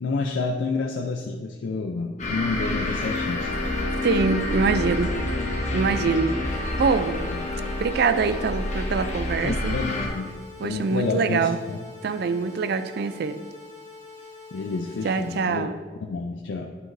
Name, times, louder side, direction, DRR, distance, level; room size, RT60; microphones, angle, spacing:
voice 1, 0.0-3.5 5.0-5.2 7.3-7.4 9.4-10.3 10.6-11.8 14.5-15.7 16.0-16.7, left 3 dB, 80° left, 2 dB, 0.4 m, -29 dB
sound 1, 2.2-10.1, left 2 dB, 40° left, 1.1 m, -28 dB
voice 2, 4.0-5.2 5.5-6.4 6.7-7.3 7.8-9.8 10.6-11.6 12.0-13.4 15.0-15.8, right 4 dB, 55° right, 11 dB, 0.4 m, -24 dB
sound 2, 6.4-15.4, left 4 dB, 85° right, 1.9 m, -45 dB
9.7 x 6.0 x 2.6 m, 1.5 s
head